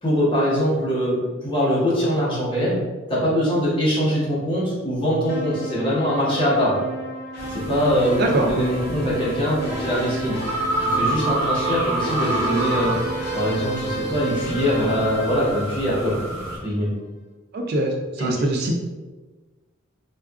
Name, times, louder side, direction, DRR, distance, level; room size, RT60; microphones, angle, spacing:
voice 1, 0.0-2.8 3.1-6.8 7.5-10.4 10.8-13.0 13.3-16.1 16.6-16.9 18.2-18.3, equal, 25° left, -7 dB, 0.9 m, -22 dB
sound 1, 5.3-16.5, right 2 dB, 50° left, 0.5 m, -31 dB
sound 2, 7.4-16.6, right 1 dB, 80° right, 0.9 m, -29 dB
voice 2, 17.5-18.7, right 1 dB, 50° right, 1 dB, 0.3 m, -23 dB
3.7 x 2.3 x 2.3 m, 1.3 s
head